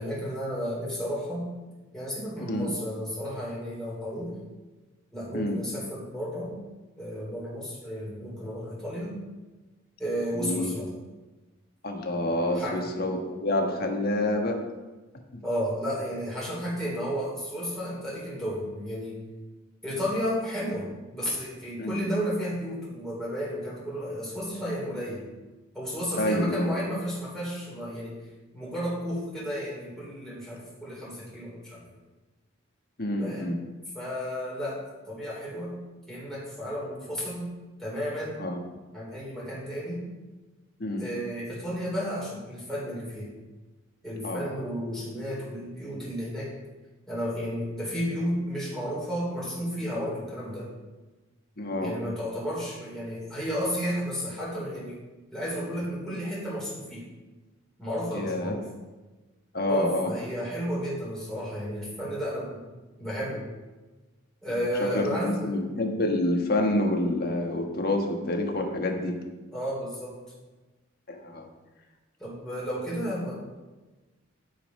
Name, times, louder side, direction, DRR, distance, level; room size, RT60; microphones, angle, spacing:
voice 1, 0.0-1.5 1.9-4.4 5.1-6.6 7.0-9.2 10.0-10.9 12.5-12.8 15.4-19.2 19.8-25.2 25.7-28.2 28.5-31.8 33.2-33.7 33.9-35.8 36.1-38.5 38.9-40.1 41.0-43.3 44.0-46.5 47.1-50.7 51.8-55.0 55.3-57.1 57.8-58.7 59.6-62.6 63.0-63.5 64.4-65.5 69.5-70.2 72.2-73.3, equal, 5° left, -7 dB, 3.7 m, -32 dB
voice 2, 2.4-2.7 5.3-5.6 10.3-10.7 11.8-14.6 15.3-15.4 21.8-22.0 26.2-26.7 33.0-33.6 38.4-38.6 40.8-41.1 44.2-44.5 51.6-51.9 58.1-58.6 59.5-60.1 64.5-69.2 71.1-71.5, left 1 dB, 45° left, 2 dB, 1.4 m, -28 dB
12.0 x 5.3 x 5.5 m, 1.2 s
head